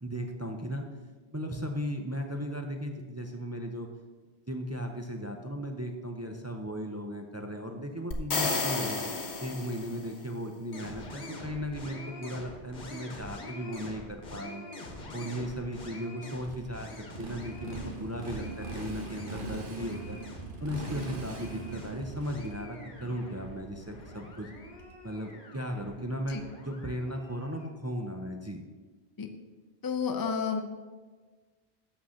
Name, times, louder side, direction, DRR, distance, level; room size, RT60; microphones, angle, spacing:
voice 1, 0.0-0.9 1.3-3.9 4.5-9.0 9.4-14.7 15.1-20.2 20.6-24.5 25.0-28.6, equal, 20° right, 3 dB, 0.4 m, -36 dB
sound 1, 8.1-10.2, left 4 dB, 75° left, 1.3 m, -31 dB
sound 2, 10.7-27.7, left 1 dB, 50° left, 1.3 m, -46 dB
Motorcycle, 16.4-25.1, right 3 dB, 50° right, 1.3 m, -41 dB
voice 2, 29.8-30.6, left 6 dB, 25° left, 5 dB, 0.6 m, -30 dB
6.4 x 6.0 x 6.3 m, 1.3 s
omnidirectional pair, 1.1 m